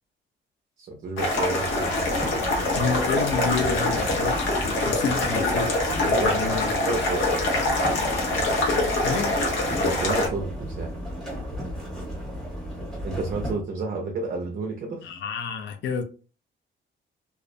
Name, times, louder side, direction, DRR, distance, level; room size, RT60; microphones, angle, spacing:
voice 1, 0.8-1.9 6.2-6.4 6.9-7.2 9.8-10.9 13.0-15.1, right 3 dB, 45° right, 0.5 m, -30 dB
sound 1, 1.2-10.3, left 2 dB, 85° left, 0.8 m, -24 dB
sound 2, 1.6-13.5, equal, ahead, 1.0 m, -34 dB
voice 2, 2.7-4.3 4.6-6.9 9.0-9.4 15.0-16.0, left 5 dB, 70° left, 0.5 m, -30 dB
2.4 x 2.0 x 2.6 m
cardioid pair, 160°, 20 cm